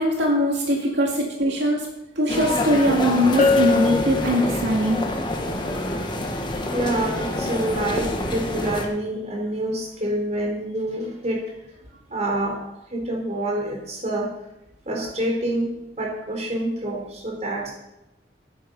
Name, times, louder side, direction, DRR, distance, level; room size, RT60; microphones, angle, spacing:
voice 1, 0.0-1.9 2.2-5.0, equal, 80° right, -1 dB, 2.3 m, -21 dB
sound 1, 2.3-8.9, left 1 dB, 25° left, 1.4 m, -27 dB
Bell, 3.4-5.0, left 3 dB, 40° left, 0.7 m, -23 dB
voice 2, 6.7-11.4 12.1-12.6 12.9-14.3 14.9-17.7, right 1 dB, 40° right, -1 dB, 3.9 m, -27 dB
13.5 x 9.9 x 5.3 m, 0.90 s
head